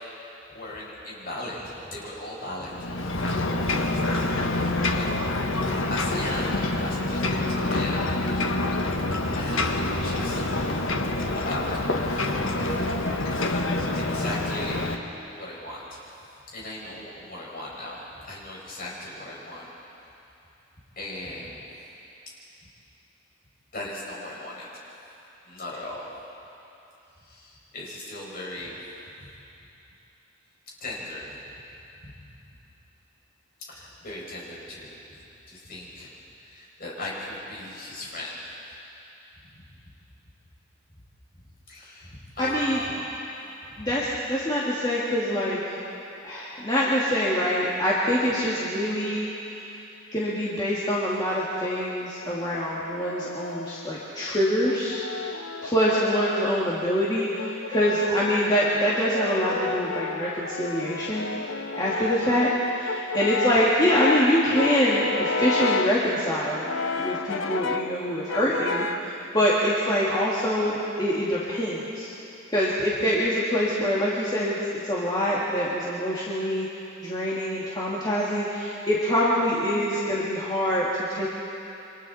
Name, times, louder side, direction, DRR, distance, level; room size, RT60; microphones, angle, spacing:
voice 1, 0.5-2.8 3.9-4.0 5.0-5.1 5.6-8.1 9.2-10.4 11.3-11.7 14.1-14.8 15.3-15.8 16.5-18.0 18.3-19.7 21.0-21.5 23.7-24.7 25.5-26.1 27.3-28.8 30.8-31.3 32.0-32.1 33.7-35.0 35.5-36.1 36.4-38.4 41.7-43.0 53.4-53.5, left 1 dB, 50° left, -5 dB, 6.3 m, -37 dB
Ocean, 2.7-15.0, left 2 dB, 85° left, 1.5 m, -26 dB
voice 2, 42.4-42.8 43.8-45.8 46.2-49.3 50.1-55.0 55.6-61.3 61.8-66.7 66.9-72.1 72.5-74.6 74.8-76.7 77.0-81.3, equal, 20° left, -7 dB, 2.5 m, -25 dB
Brass instrument, 52.0-53.9 54.7-56.7 57.4-66.0 66.6-68.0 68.3-69.1, left 4 dB, 70° left, 0.8 m, -31 dB
28.0 x 25.5 x 4.4 m, 2.8 s
head